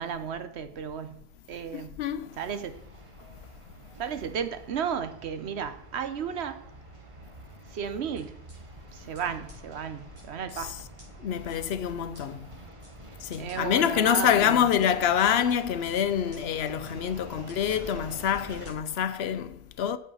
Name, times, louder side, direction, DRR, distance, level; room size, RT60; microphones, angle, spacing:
voice 1, 0.0-2.0 2.4-2.8 4.0-6.6 7.7-8.4 8.9-10.7 13.4-14.7, right 7 dB, 80° right, 1.1 m, -34 dB
voice 2, 1.7-2.4 10.5-10.8 11.2-12.5 13.2-20.0, left 9 dB, 75° left, 0.9 m, -26 dB
sound 1, 2.4-18.7, right 2 dB, 30° right, 1.2 m, -47 dB
sound 2, 8.2-8.6 9.1-9.2 9.5-9.6 10.1-10.6 11.0-11.1 11.5-11.6 12.1-12.2 12.8-12.9 13.3-13.9 14.5-14.9 15.5-15.9 16.3-16.4 16.8-16.9 17.5-17.6 18.1-18.3 18.6-18.7, equal, 55° right, 4.5 m, -54 dB
8.5 x 7.3 x 5.5 m
omnidirectional pair, 1.1 m